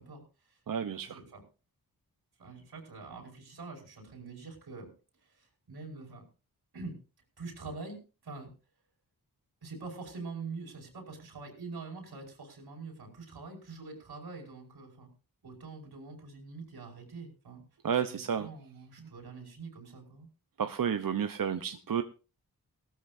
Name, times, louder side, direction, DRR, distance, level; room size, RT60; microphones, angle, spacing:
voice 1, 0.0-0.6 1.0-1.4 2.4-4.9 5.2-6.3 6.7-7.0 7.4-8.5 9.6-15.1 15.4-17.6 17.9-20.3, right 4 dB, 90° right, 1 dB, 5.4 m, -45 dB
voice 2, 0.7-1.2 17.8-18.5 19.0-19.1 20.6-22.0, right 8 dB, 65° right, 9 dB, 0.9 m, -31 dB
18.5 x 13.0 x 2.6 m, 0.33 s
wide cardioid pair, 95°, 37 cm